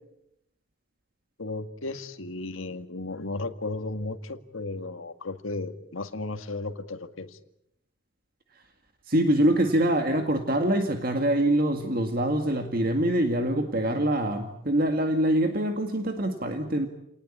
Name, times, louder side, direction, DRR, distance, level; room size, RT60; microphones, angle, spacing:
voice 1, 1.4-7.4, left 2 dB, 85° left, 8 dB, 1.8 m, -34 dB
voice 2, 9.1-16.9, right 1 dB, 45° right, 6 dB, 1.9 m, -24 dB
29.0 x 19.0 x 8.6 m, 0.80 s
head